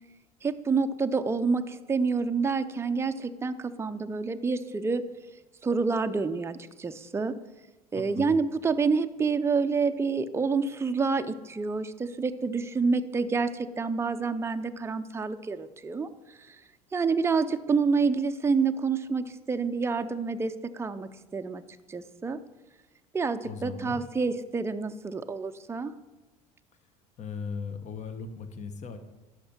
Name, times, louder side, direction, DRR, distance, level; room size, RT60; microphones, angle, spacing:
voice 1, 0.4-5.0 5.6-7.4 7.9-16.6 16.9-21.6 21.9-22.4 23.1-25.9, right 4 dB, 15° right, 8 dB, 0.5 m, -28 dB
voice 2, 7.9-8.4 23.4-24.0 27.2-29.0, left 5 dB, 40° left, 9 dB, 1.0 m, -38 dB
11.5 x 5.9 x 4.4 m, 1.1 s
hypercardioid pair, 80°, 19 cm